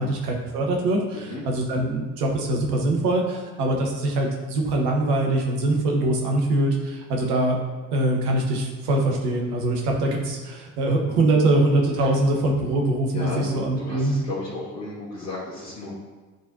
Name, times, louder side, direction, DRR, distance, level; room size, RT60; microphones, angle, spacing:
voice 1, 0.0-7.6 7.9-14.1, right 1 dB, 75° right, 0 dB, 1.2 m, -23 dB
voice 2, 13.1-15.9, left 2 dB, 80° left, -7 dB, 1.4 m, -34 dB
9.8 x 4.1 x 2.7 m, 1.3 s
figure-of-eight pair, 50°, 47 cm